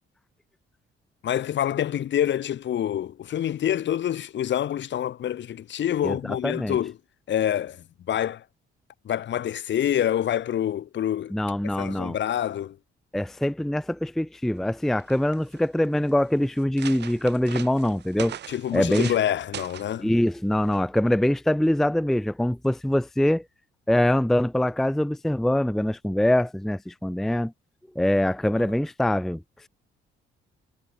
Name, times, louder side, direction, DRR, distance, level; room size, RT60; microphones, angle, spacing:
voice 1, 1.2-7.0 7.3-8.4 9.0-11.3 11.6-12.8 18.5-20.1, left 10 dB, 65° left, 2.5 m, -26 dB
voice 2, 6.0-6.8 11.3-12.2 13.1-18.4 18.7-19.1 20.0-23.4 23.9-27.5 28.0-29.4, left 1 dB, ahead, 0.5 m, -24 dB
sound 1, 14.7-14.8 15.0-15.6 16.2-16.3 16.6-19.2 19.5-19.9 20.7-21.0, right 10 dB, 60° right, 1.3 m, -39 dB
cardioid pair, 90°, 20 cm